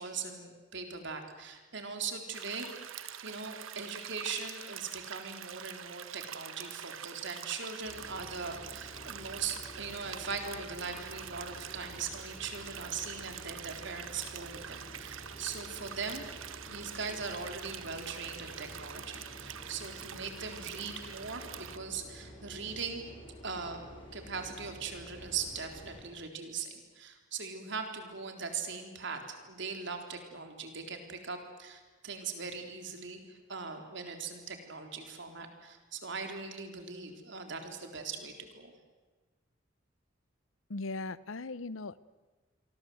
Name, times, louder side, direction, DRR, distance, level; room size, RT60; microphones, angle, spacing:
voice 1, 0.0-2.7 3.2-23.1 23.4-23.9 24.1-38.7, right 5 dB, 65° right, 5 dB, 3.8 m, -40 dB
sound 1, 2.3-21.8, right 9 dB, 85° right, 1.2 m, -45 dB
sound 2, 7.8-26.0, equal, 25° left, 6.2 m, -50 dB
voice 2, 40.7-42.0, left 3 dB, 80° left, 18 dB, 0.9 m, -38 dB
27.5 x 23.5 x 8.0 m, 1.3 s
head